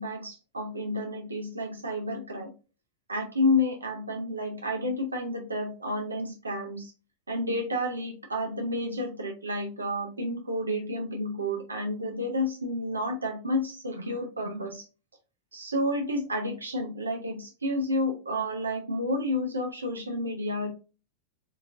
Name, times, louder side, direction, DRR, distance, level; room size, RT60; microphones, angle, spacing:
voice 1, 0.0-2.5 3.1-6.9 7.3-14.9 15.5-20.7, left 1 dB, 80° right, 2 dB, 0.5 m, -30 dB
3.7 x 2.8 x 2.4 m, 0.33 s
figure-of-eight pair, 90°, 0 cm